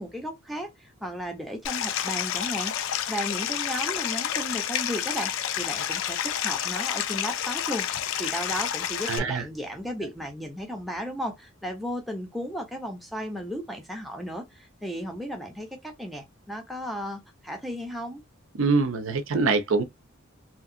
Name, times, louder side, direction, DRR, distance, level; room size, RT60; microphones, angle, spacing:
voice 1, 0.0-7.9 8.2-18.2, equal, ahead, 0.6 m, -35 dB
Stream, 1.6-9.2, left 10 dB, 65° left, 0.4 m, -29 dB
voice 2, 9.1-9.4 18.6-19.8, right 4 dB, 65° right, 0.5 m, -24 dB
2.8 x 2.5 x 2.5 m
head